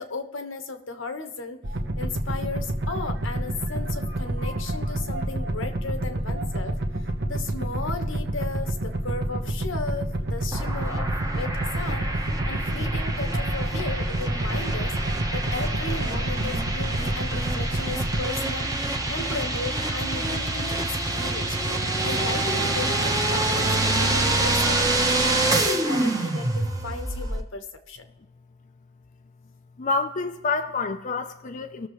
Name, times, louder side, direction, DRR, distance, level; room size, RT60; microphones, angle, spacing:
voice 1, 0.0-1.6 2.0-6.8 7.3-15.0 15.3-18.7 19.1-21.6 22.0-28.1, left 3 dB, 80° left, 7 dB, 1.3 m, -35 dB
sound 1, 1.6-18.3, right 1 dB, 60° right, 1.1 m, -28 dB
sound 2, 10.5-27.4, right 2 dB, 20° right, 1.1 m, -26 dB
voice 2, 29.8-31.9, left 4 dB, 40° left, 5 dB, 0.6 m, -28 dB
20.0 x 6.9 x 3.2 m, 1.1 s
head